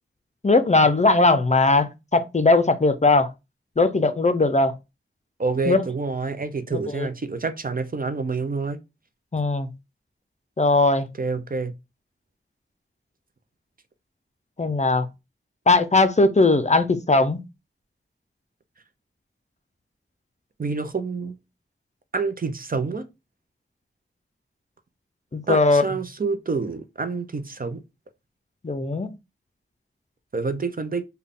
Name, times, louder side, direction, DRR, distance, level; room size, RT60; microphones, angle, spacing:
voice 1, 0.4-3.3 3.8-4.8 5.7-5.8 6.7-7.1 9.3-9.7 10.6-11.1 14.6-15.1 15.7-17.4 25.3-25.8 28.6-29.1, left 3 dB, 35° left, 0.5 m, -19 dB
voice 2, 5.4-8.8 11.2-11.7 20.6-21.3 22.1-23.1 25.5-27.8 30.3-31.0, right 4 dB, 45° right, 0.5 m, -27 dB
3.6 x 2.2 x 3.6 m
wide cardioid pair, 50°, 21 cm